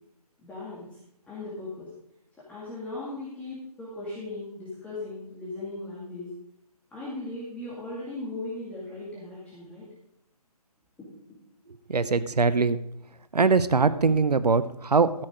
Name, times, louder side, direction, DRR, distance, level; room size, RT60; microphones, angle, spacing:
voice 1, 0.4-0.9 1.3-1.9 2.5-6.3 6.9-9.9, left 2 dB, 5° left, -8 dB, 2.2 m, -37 dB
voice 2, 11.9-12.8 13.3-15.2, right 4 dB, 85° right, 14 dB, 0.7 m, -22 dB
13.0 x 6.4 x 5.0 m, 0.76 s
figure-of-eight pair, 145°, 20 cm